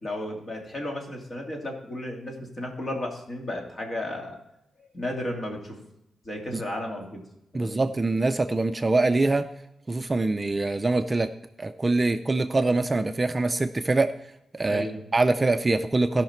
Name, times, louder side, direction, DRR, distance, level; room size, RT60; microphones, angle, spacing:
voice 1, 0.0-4.4 4.9-5.8 6.2-7.2 7.5-7.8 14.6-15.0, left 1 dB, 40° left, 1 dB, 2.5 m, -33 dB
voice 2, 7.5-9.4 9.9-11.3 11.6-14.1 14.5-14.9 15.1-16.2, right 2 dB, 25° right, 8 dB, 0.4 m, -24 dB
16.0 x 5.7 x 4.4 m, 0.85 s
wide cardioid pair, 110°, 0 cm